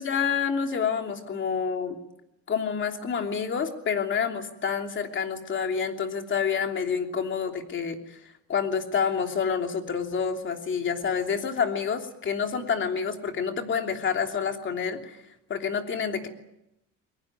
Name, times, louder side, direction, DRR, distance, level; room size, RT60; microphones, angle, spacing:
voice 1, 0.0-2.0 2.5-8.2 8.5-15.2 15.5-16.3, left 6 dB, 35° left, 4 dB, 3.1 m, -28 dB
22.5 x 22.5 x 9.3 m, 0.86 s
cardioid pair, 145°, 34 cm